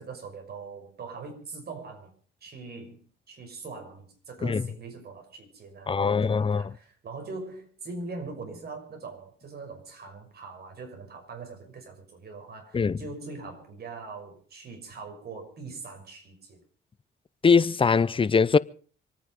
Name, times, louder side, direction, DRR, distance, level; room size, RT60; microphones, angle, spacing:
voice 1, 0.0-2.1 2.4-16.6, right 4 dB, 55° right, 6.1 m, -42 dB
voice 2, 5.9-6.7 12.7-13.0 17.4-18.6, left 5 dB, 25° left, 0.7 m, -22 dB
25.5 x 9.7 x 5.3 m
cardioid pair, 90°, 20 cm